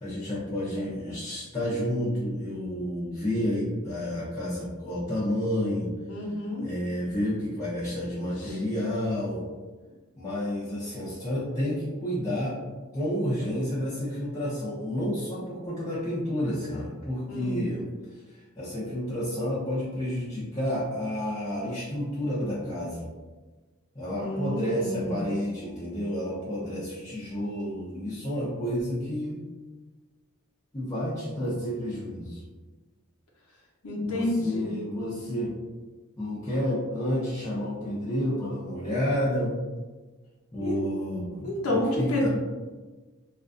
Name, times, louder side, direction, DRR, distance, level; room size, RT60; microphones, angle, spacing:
voice 1, 0.0-5.9 6.6-9.4 10.2-12.6 12.9-17.8 18.1-23.1 23.9-29.4 30.7-32.4 34.0-35.5 36.2-39.5 40.5-42.3, equal, 15° left, -10 dB, 0.5 m, -30 dB
voice 2, 6.1-6.6 8.4-8.6 17.3-17.6 24.2-25.3 33.8-34.7 40.6-40.8 41.4-42.3, left 1 dB, 90° left, -2 dB, 0.7 m, -29 dB
2.4 x 2.3 x 2.4 m, 1.3 s
head